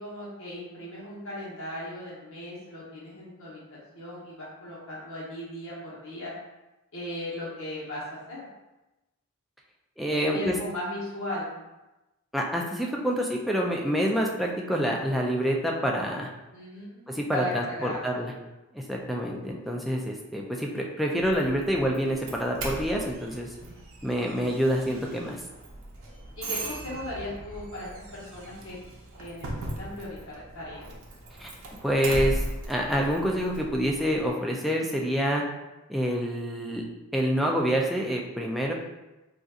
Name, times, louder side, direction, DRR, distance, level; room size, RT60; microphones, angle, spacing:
voice 1, 0.0-6.3 6.9-8.5 10.3-11.6 16.5-18.3 26.4-28.8 29.2-29.5 29.8-30.9, left 1 dB, 65° left, -6 dB, 1.1 m, -37 dB
voice 2, 10.0-10.6 12.3-16.3 17.1-18.3 18.7-23.5 24.0-25.4 31.4-31.5 31.8-35.4 35.9-36.9 37.1-38.7, equal, ahead, -2 dB, 0.3 m, -27 dB
Doorbell, 21.2-34.3, right 1 dB, 65° right, 0.6 m, -38 dB
3.9 x 2.5 x 2.4 m, 1.0 s
head